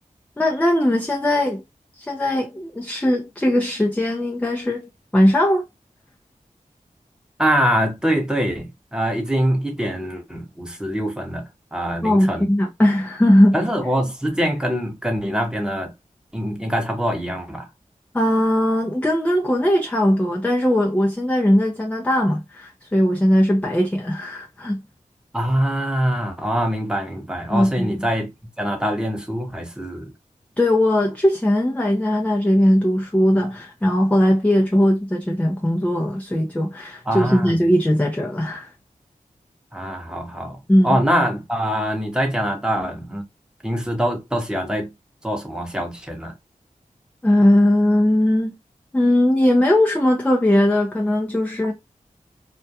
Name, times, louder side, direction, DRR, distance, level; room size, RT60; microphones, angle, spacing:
voice 1, 0.4-1.6 2.0-5.6 12.0-13.6 18.1-24.8 27.5-28.0 30.6-38.7 40.7-41.0 47.2-48.5 48.9-51.7, left 1 dB, 10° left, 0.5 m, -19 dB
voice 2, 7.4-12.5 13.5-15.9 16.3-17.7 25.3-28.3 28.6-30.1 37.1-37.5 39.7-40.6 40.8-43.2 43.6-44.9 45.2-46.3, equal, 5° right, 0.9 m, -24 dB
2.3 x 2.2 x 2.7 m
cardioid pair, 50°, 14 cm